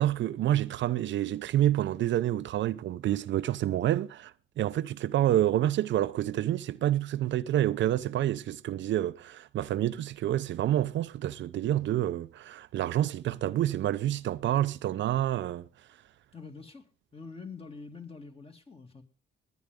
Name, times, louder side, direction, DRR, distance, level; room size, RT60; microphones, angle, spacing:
voice 1, 0.0-15.7, right 12 dB, 70° right, 0.6 m, -28 dB
voice 2, 16.3-16.9 17.1-19.0, left 4 dB, 30° left, 2.3 m, -45 dB
20.5 x 9.4 x 3.6 m
cardioid pair, 90°, 20 cm